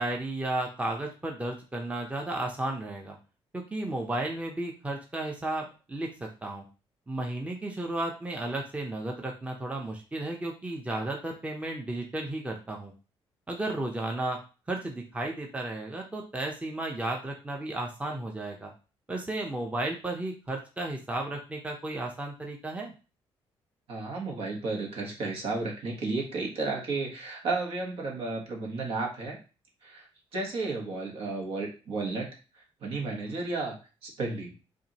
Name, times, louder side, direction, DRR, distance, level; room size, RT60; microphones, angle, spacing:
voice 1, 0.0-3.2 3.5-6.6 7.1-12.9 13.5-14.4 14.7-18.7 19.1-22.9, right 2 dB, 15° right, 0 dB, 0.8 m, -33 dB
voice 2, 23.9-29.4 29.8-30.1 30.3-32.3 32.5-33.8 34.0-34.6, right 3 dB, 70° right, 0 dB, 1.5 m, -33 dB
4.7 x 2.7 x 2.9 m, 0.33 s
cardioid pair, 100°, 10 cm